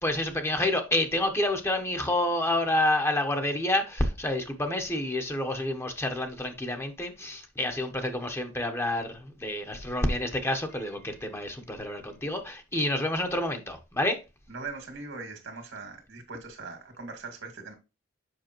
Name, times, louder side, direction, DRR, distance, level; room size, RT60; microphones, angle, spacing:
voice 1, 0.0-14.2, left 1 dB, 15° left, 1.0 m, -28 dB
voice 2, 14.5-17.7, right 4 dB, 70° right, 2.2 m, -40 dB
7.6 x 5.6 x 3.0 m
head